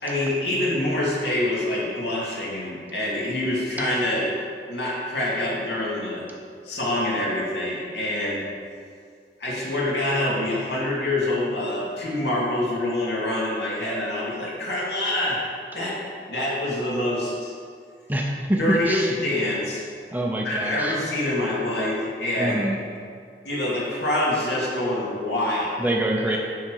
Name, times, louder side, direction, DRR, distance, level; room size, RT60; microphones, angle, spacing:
voice 1, 0.0-4.3 4.7-6.2 6.6-8.4 9.4-15.4 15.7-16.0 16.3-17.5 18.6-19.8 20.4-22.6 23.4-25.8 26.3-26.4, left 1 dB, 80° left, -5 dB, 2.4 m, -26 dB
voice 2, 18.1-18.6 18.9-19.1 20.1-20.9 22.4-22.8 25.8-26.4, right 1 dB, 10° right, 0 dB, 0.7 m, -25 dB
10.0 x 4.3 x 6.5 m, 2.2 s
head